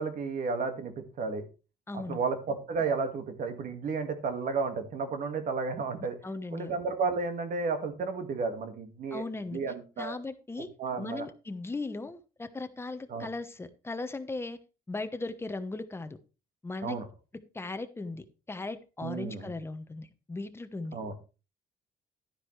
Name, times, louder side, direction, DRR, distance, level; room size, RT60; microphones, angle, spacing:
voice 1, 0.0-1.4 1.9-6.2 6.5-9.2 9.5-10.2 10.8-11.3 13.1-13.3 16.8-17.1 19.0-19.5 20.9-21.1, right 4 dB, 55° right, 6 dB, 2.0 m, -32 dB
voice 2, 1.9-2.2 6.2-6.8 9.1-9.6 10.0-10.7 11.0-14.6 14.9-16.2 16.6-17.0 17.5-21.0, left 3 dB, 15° left, 11 dB, 1.1 m, -37 dB
12.0 x 10.0 x 3.3 m, 0.31 s
cardioid pair, 110°, 17 cm